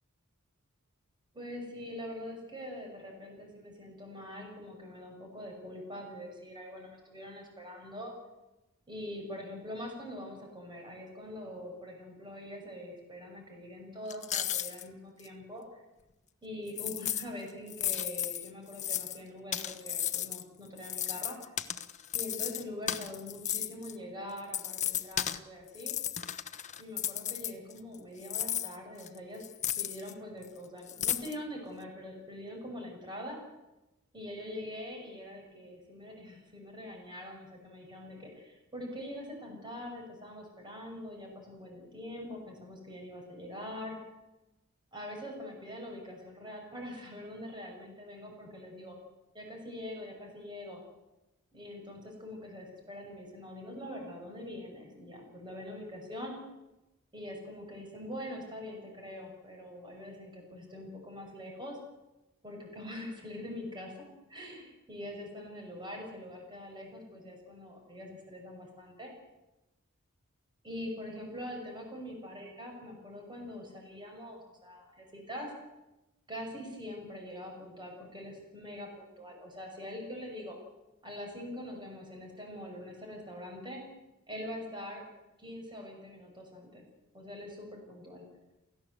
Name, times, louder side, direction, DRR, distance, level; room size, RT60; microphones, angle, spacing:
voice 1, 1.3-8.1 8.9-15.8 16.4-21.4 22.1-26.0 26.8-29.4 29.8-33.4 34.1-44.0 44.9-49.0 49.3-50.8 51.5-56.4 57.1-61.8 62.4-64.0 64.3-69.1 70.6-75.5 76.3-80.6 81.0-83.8 84.3-85.0 85.4-86.8 87.1-88.2, left 1 dB, 20° right, 1 dB, 6.3 m, -43 dB
sound 1, 14.1-14.8 15.2-15.3 16.7-17.2 17.7-19.2 19.5-20.4 20.8-23.9 24.4-25.4 25.7-28.0 28.2-30.1 30.4-30.5 30.9-31.4, left 10 dB, 35° left, 1.1 m, -34 dB
29.0 x 16.0 x 8.0 m, 1.0 s
head